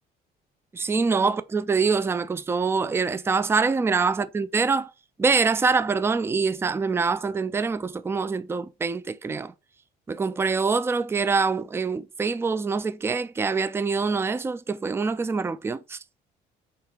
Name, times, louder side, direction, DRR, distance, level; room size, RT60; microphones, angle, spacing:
voice 1, 0.7-4.9 5.2-9.5 10.1-16.0, right 4 dB, 15° right, 0.3 m, -25 dB
5.7 x 3.5 x 2.4 m
cardioid pair, 110°, 17 cm